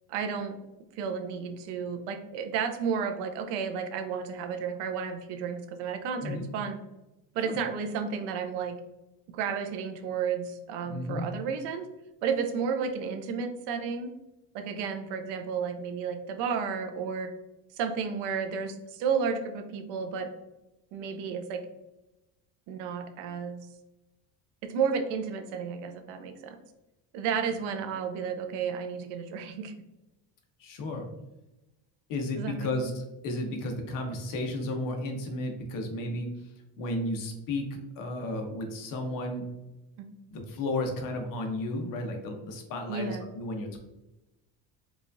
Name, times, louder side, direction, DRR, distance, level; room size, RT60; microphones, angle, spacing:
voice 1, 0.1-0.6 1.0-6.8 7.3-8.7 9.3-11.9 12.2-14.1 14.5-17.3 17.8-20.3 20.9-21.6 22.7-23.7 24.6-26.6 27.1-29.7 32.4-32.9 40.0-40.1 42.9-43.2, right 6 dB, 80° right, 6 dB, 0.6 m, -32 dB
voice 2, 10.9-11.2 30.6-31.1 32.1-32.9 33.2-36.3 36.8-37.7 38.0-39.5 40.3-43.8, left 2 dB, 50° left, 3 dB, 0.8 m, -33 dB
4.7 x 2.4 x 2.5 m, 0.97 s
cardioid pair, 160°, 41 cm